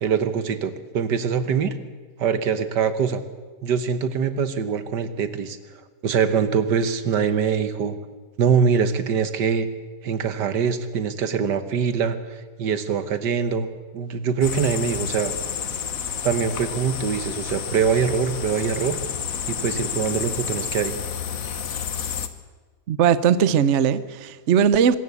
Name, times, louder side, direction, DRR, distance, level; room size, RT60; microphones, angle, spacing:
voice 1, 0.0-1.7 2.2-3.2 3.6-5.6 6.0-8.0 8.4-9.7 10.0-15.3 16.2-19.0 19.5-21.0, right 6 dB, 80° right, 1.8 m, -23 dB
sound 1, 14.4-22.3, left 7 dB, 55° left, 1.5 m, -30 dB
voice 2, 22.9-25.0, right 8 dB, 55° right, 0.9 m, -19 dB
24.5 x 14.0 x 8.3 m
omnidirectional pair, 1.8 m